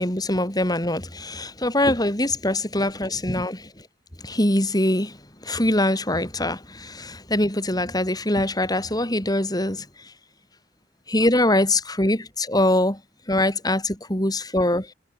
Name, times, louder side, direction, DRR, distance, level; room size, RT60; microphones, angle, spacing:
voice 1, 0.0-3.7 4.2-5.2 5.4-9.9 11.1-13.0 13.3-14.9, left 1 dB, 20° left, 5.7 m, -23 dB
head